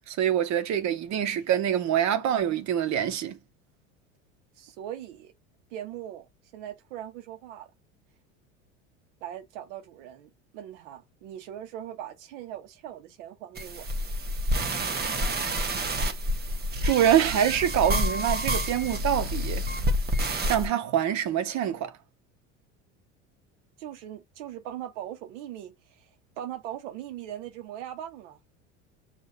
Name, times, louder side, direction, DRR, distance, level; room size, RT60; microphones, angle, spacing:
voice 1, 0.1-3.4 15.4-15.6 16.8-19.6 20.3-21.9, right 10 dB, 50° right, 1.3 m, -25 dB
voice 2, 4.6-5.3 5.7-6.3 6.5-7.7 9.2-13.9 23.8-26.1 26.4-28.4, right 11 dB, 70° right, 1.2 m, -40 dB
sound 1, 13.6-20.7, equal, 25° right, 1.2 m, -28 dB
6.4 x 2.8 x 2.7 m
hypercardioid pair, 80°, 37 cm